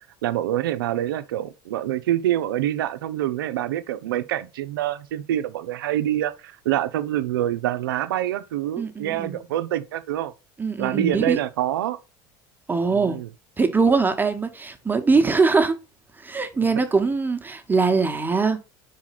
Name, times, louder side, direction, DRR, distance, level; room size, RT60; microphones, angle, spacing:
voice 1, 0.2-10.3 10.8-12.0 12.9-13.3, right 12 dB, 85° right, 0.5 m, -26 dB
voice 2, 8.8-9.4 10.6-11.4 12.7-13.2 13.6-15.7 16.2-18.6, right 4 dB, 15° right, 1.1 m, -22 dB
4.8 x 4.1 x 5.7 m
hypercardioid pair, 85°, 11 cm